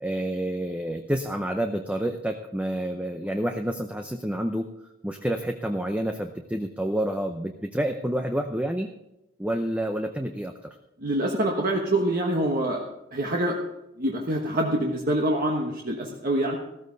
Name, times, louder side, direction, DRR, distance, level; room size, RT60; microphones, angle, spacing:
voice 1, 0.0-4.7 5.0-8.9 9.4-10.5, right 1 dB, 5° right, 5 dB, 0.6 m, -28 dB
voice 2, 11.0-12.8 13.1-13.6 14.0-16.6, right 1 dB, 45° right, 0 dB, 1.3 m, -25 dB
15.0 x 13.5 x 4.0 m, 0.90 s
head